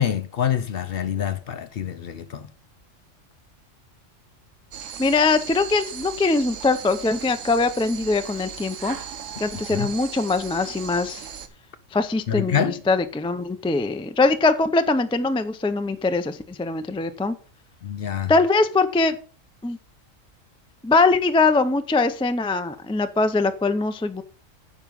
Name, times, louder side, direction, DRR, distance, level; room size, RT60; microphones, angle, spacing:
voice 1, 0.0-2.5 9.7-9.9 12.3-12.8 17.8-18.3, left 8 dB, 55° left, 0.7 m, -26 dB
sound 1, 4.7-11.5, right 7 dB, 75° right, 1.3 m, -37 dB
voice 2, 5.0-9.0 9.4-11.3 11.9-17.4 18.3-19.2 19.6-19.8 20.8-24.2, left 3 dB, 10° left, 0.3 m, -22 dB
9.4 x 5.6 x 5.3 m
omnidirectional pair, 1.4 m